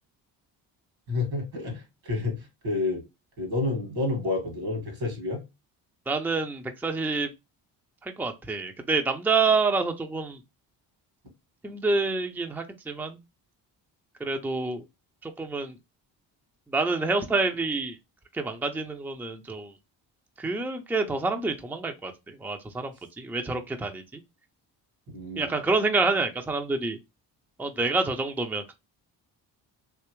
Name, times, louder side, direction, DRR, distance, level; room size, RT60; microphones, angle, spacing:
voice 1, 1.1-3.0 3.4-5.4 25.1-25.6, left 3 dB, 75° right, 2.1 m, -29 dB
voice 2, 6.1-7.3 8.0-10.4 11.6-13.2 14.2-14.8 15.2-15.8 16.7-18.0 18.3-19.7 20.4-24.0 25.4-27.0 27.6-28.7, right 3 dB, 5° right, 0.5 m, -27 dB
3.4 x 2.9 x 3.0 m
supercardioid pair, 60°, 46 cm